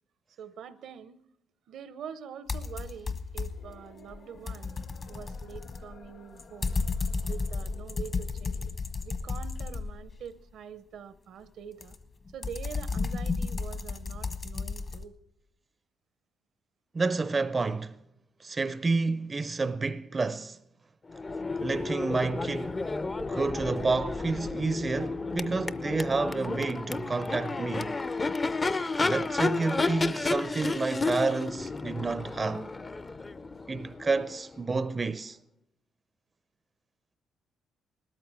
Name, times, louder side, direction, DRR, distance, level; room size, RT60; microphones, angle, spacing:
voice 1, 0.4-1.3 1.7-4.7 5.1-6.7 7.2-8.7 9.0-12.0 12.3-15.2, right 7 dB, 75° right, 0.7 m, -45 dB
sound 1, 2.5-3.8 4.1-10.3 11.8-15.0, left 4 dB, 45° left, 1.1 m, -33 dB
sound 2, 3.2-8.7, left 4 dB, 80° left, 2.2 m, -55 dB
voice 2, 16.9-18.0 18.4-20.6 21.6-22.8 23.3-28.0 29.0-32.7 33.7-35.4, right 3 dB, 30° right, 0.4 m, -30 dB
Crowd / Race car auto racing / Accelerating revving vroom, 21.1-34.9, left 3 dB, 30° left, 0.5 m, -32 dB
19.5 x 13.0 x 4.7 m
cardioid pair, 90°, 0 cm